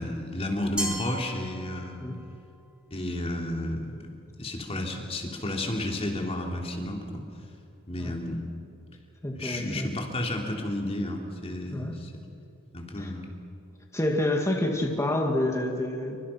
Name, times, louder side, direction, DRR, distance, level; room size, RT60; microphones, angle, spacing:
voice 1, 0.0-2.0 2.9-4.1 4.4-7.2 7.9-8.5 9.3-12.1 12.7-13.2, left 1 dB, 30° left, 2 dB, 3.2 m, -32 dB
Glass, 0.8-2.2, right 1 dB, 5° right, 3.1 m, -35 dB
voice 2, 9.2-9.9 11.7-12.0 13.0-13.1 13.9-16.2, left 1 dB, 15° left, 2 dB, 2.1 m, -28 dB
27.5 x 24.5 x 5.8 m, 2.5 s
head